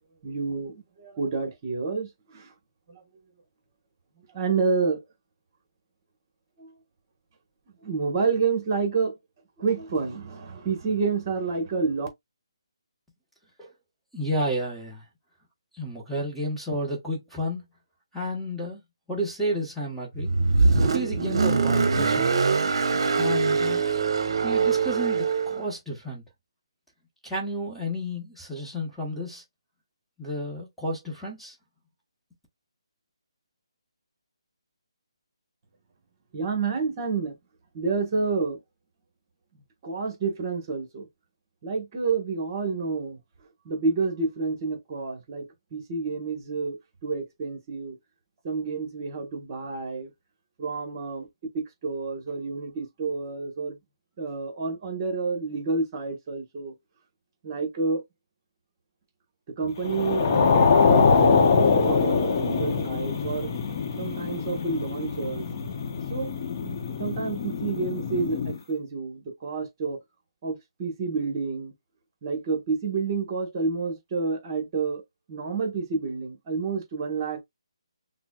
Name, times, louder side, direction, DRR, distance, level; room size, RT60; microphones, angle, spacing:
voice 1, 0.2-2.5 2.9-3.0 4.3-5.0 6.6-6.7 7.8-9.1 9.6-12.1 36.3-37.3 37.7-38.6 39.8-41.1 41.6-43.2 43.6-48.0 48.4-50.1 50.6-51.3 51.5-53.8 54.2-56.7 57.4-58.0 59.6-63.5 64.0-65.5 66.1-66.3 66.6-70.0 70.4-71.7 72.2-75.0 75.3-77.4, right 4 dB, 35° right, 1.3 m, -29 dB
voice 2, 14.1-15.0 15.7-17.6 18.1-18.8 19.1-20.3 20.8-22.5 23.2-23.8 24.4-26.2 27.2-29.4 30.2-31.5, equal, ahead, 1.1 m, -31 dB
Car, 20.2-25.6, right 4 dB, 55° right, 0.9 m, -23 dB
sound 1, 59.8-68.6, left 5 dB, 35° left, 0.9 m, -23 dB
5.8 x 2.1 x 2.3 m
figure-of-eight pair, 155°, 3 cm